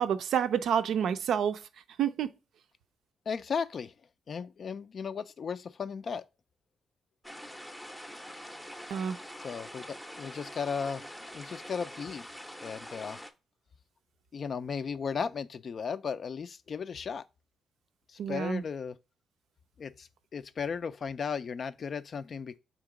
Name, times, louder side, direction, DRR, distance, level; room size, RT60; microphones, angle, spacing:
voice 1, 0.0-1.6 2.0-2.3 8.9-9.2 18.2-18.6, right 8 dB, 80° right, 0.4 m, -28 dB
voice 2, 3.3-3.9 4.3-6.2 9.4-11.0 11.3-12.3 12.6-13.2 14.3-17.2 18.1-19.0 19.8-22.6, left 6 dB, 50° left, 0.3 m, -36 dB
sound 1, 7.2-13.3, equal, 5° left, 0.6 m, -45 dB
3.7 x 2.9 x 4.8 m
cardioid pair, 95°, 0 cm